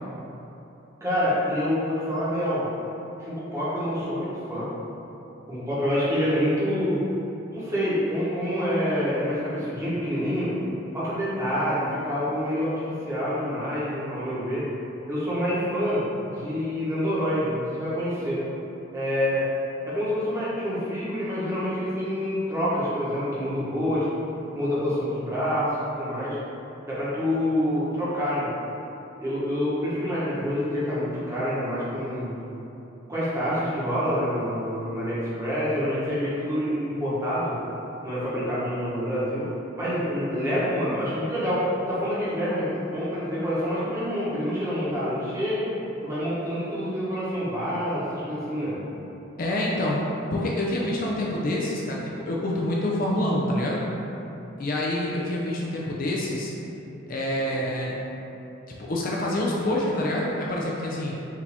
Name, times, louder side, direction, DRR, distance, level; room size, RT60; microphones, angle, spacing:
voice 1, 1.0-2.7 3.2-4.7 5.5-7.0 7.5-10.5 10.9-14.6 15.1-18.4 18.9-19.4 19.8-24.1 24.5-26.4 26.9-28.5 29.2-32.3 33.1-37.6 38.0-39.4 39.8-45.7 46.0-48.8, equal, 15° right, -10 dB, 1.0 m, -27 dB
voice 2, 49.4-53.8 54.6-56.5 57.1-58.0 58.8-61.1, left 1 dB, 45° left, -3 dB, 0.4 m, -27 dB
4.7 x 2.7 x 3.4 m, 3.0 s
head